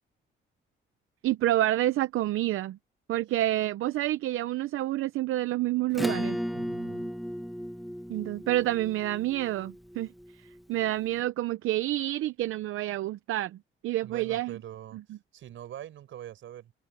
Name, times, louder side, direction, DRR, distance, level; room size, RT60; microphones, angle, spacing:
voice 1, 1.2-2.8 3.1-6.4 8.1-13.6 13.8-14.6, right 15 dB, 90° right, 0.6 m, -28 dB
Acoustic guitar / Strum, 5.9-10.9, equal, ahead, 1.2 m, -35 dB
voice 2, 6.5-7.1 14.0-16.7, right 11 dB, 70° right, 6.7 m, -44 dB
cardioid pair, 165°, 21 cm